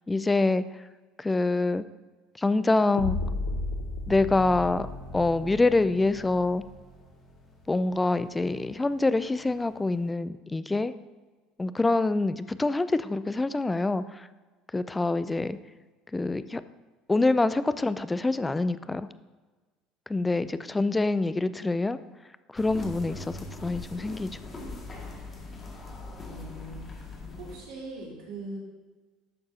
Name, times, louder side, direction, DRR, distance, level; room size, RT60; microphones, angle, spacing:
voice 1, 0.1-0.8 1.2-1.9 2.3-3.2 4.1-4.9 5.1-6.6 7.7-10.9 11.6-14.3 14.7-15.6 16.1-16.6 17.1-19.1 20.1-22.0 22.5-24.3, left 2 dB, 15° left, 14 dB, 0.4 m, -26 dB
sound 1, 3.0-7.0, left 3 dB, 85° left, 0.7 m, -34 dB
sound 2, 4.1-10.1, right 2 dB, 45° left, 2.7 m, -50 dB
sound 3, 22.6-27.6, left 2 dB, 30° left, 2.1 m, -40 dB
voice 2, 26.2-26.9 27.4-28.6, right 2 dB, 65° right, -3 dB, 2.8 m, -41 dB
11.5 x 6.6 x 2.8 m, 1.3 s
hypercardioid pair, 70°, 0 cm